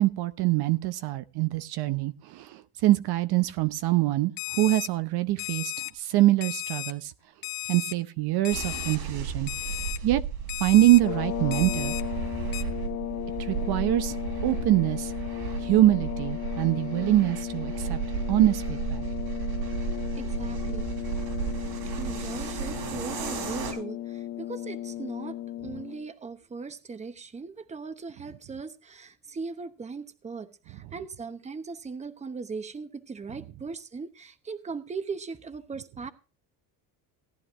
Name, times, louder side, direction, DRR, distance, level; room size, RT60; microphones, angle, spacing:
voice 1, 0.0-7.1 7.7-9.5 10.0-10.2 10.6-11.9 13.4-14.2 14.4-15.1 15.6-18.0 18.3-19.0, right 15 dB, 65° right, 0.8 m, -24 dB
Alarm, 4.4-4.9 5.4-5.9 6.4-6.9 7.4-7.9 8.4-9.0 9.5-10.0 10.5-11.0 11.5-12.0 12.5-12.6, left 20 dB, 70° left, 1.1 m, -34 dB
sound 1, 8.5-23.7, right 6 dB, 80° right, 4.2 m, -34 dB
sound 2, 10.9-26.1, left 13 dB, 45° left, 0.8 m, -35 dB
voice 2, 20.1-20.9 22.0-36.1, right 4 dB, 15° right, 0.9 m, -39 dB
18.0 x 11.0 x 2.5 m
cardioid pair, 125°, 42 cm